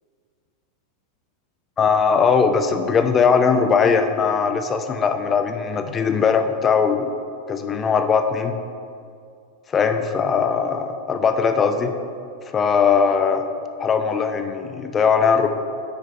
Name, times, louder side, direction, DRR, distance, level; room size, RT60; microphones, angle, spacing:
voice 1, 1.8-7.1 7.5-8.5 9.7-11.9 12.5-13.4 13.8-15.5, left 6 dB, 20° left, 7 dB, 0.4 m, -19 dB
8.8 x 5.1 x 2.5 m, 2.3 s
figure-of-eight pair, 90°, 0 cm